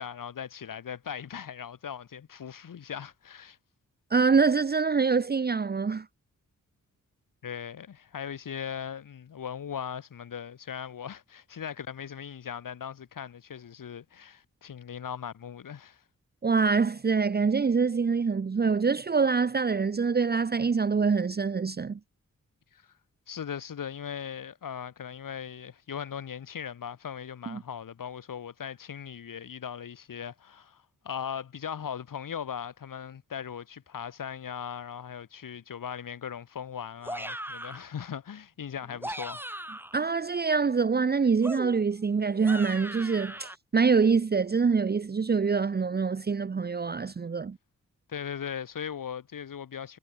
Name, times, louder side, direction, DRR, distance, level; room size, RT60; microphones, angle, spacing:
voice 1, 0.0-3.6 7.4-16.0 22.7-22.9 23.3-39.5 48.1-50.0, left 8 dB, 90° left, 4.6 m, -39 dB
voice 2, 4.1-6.1 16.4-22.0 27.5-27.6 39.9-47.6, right 5 dB, 30° right, 0.9 m, -25 dB
sound 1, 37.0-37.9 38.8-40.0 41.4-43.6, right 1 dB, 5° right, 7.5 m, -39 dB
wide cardioid pair, 150°, 32 cm